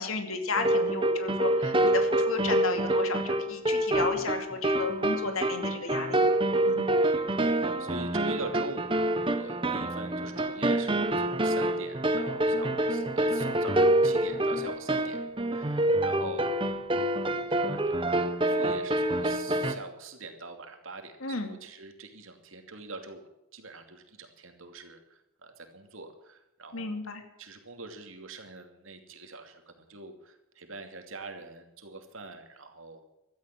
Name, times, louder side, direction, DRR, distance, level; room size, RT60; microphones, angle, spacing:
voice 1, 0.0-6.3 6.6-6.8 21.2-21.5 26.7-27.2, left 3 dB, 80° left, 6 dB, 2.5 m, -33 dB
sound 1, 0.5-19.7, right 1 dB, 25° right, 1.0 m, -27 dB
voice 2, 7.4-15.2 15.5-16.5 17.5-23.2 23.5-26.9 27.4-33.1, right 3 dB, 70° right, 5 dB, 2.7 m, -44 dB
16.5 x 13.0 x 6.1 m, 0.88 s
head